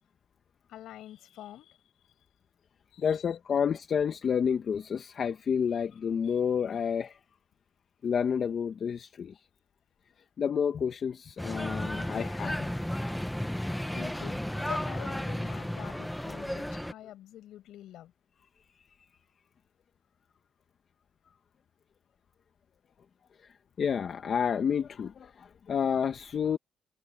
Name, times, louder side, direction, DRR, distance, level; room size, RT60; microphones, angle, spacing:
voice 1, 0.7-1.8 2.9-3.2 13.9-18.1, left 12 dB, 80° left, 7.2 m, -46 dB
voice 2, 3.0-7.2 8.0-9.4 10.4-12.7 23.4-26.6, left 7 dB, 55° left, 1.5 m, -30 dB
sound 1, 11.4-16.9, left 1 dB, 5° left, 1.0 m, -33 dB
cardioid pair, 90°, 0 cm